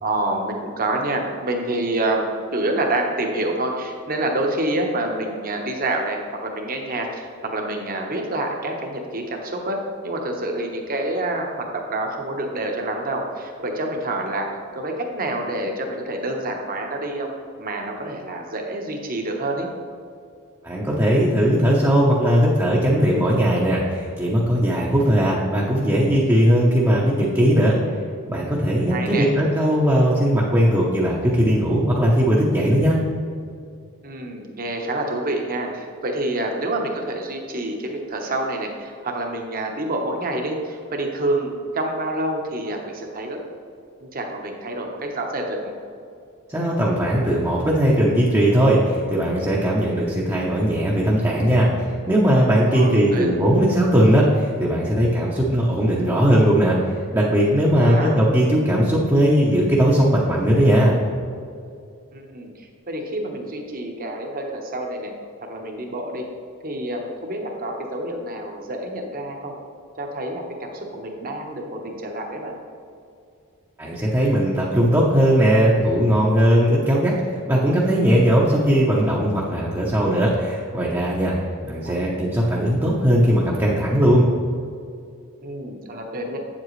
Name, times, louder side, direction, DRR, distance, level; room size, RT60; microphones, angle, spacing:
voice 1, 0.0-14.5 14.7-17.3 17.6-19.7 28.9-29.3 34.0-43.4 44.1-45.7 52.7-53.3 57.7-58.1 62.1-65.1 65.4-66.2 66.6-69.5 70.0-72.6 81.8-82.0 85.4-86.4, right 1 dB, 40° right, 2 dB, 1.0 m, -27 dB
voice 2, 20.6-27.8 28.3-33.0 46.5-60.9 73.8-77.2 77.5-81.4 81.7-84.3, equal, 15° right, -5 dB, 0.8 m, -18 dB
8.5 x 7.6 x 3.2 m, 2.4 s
head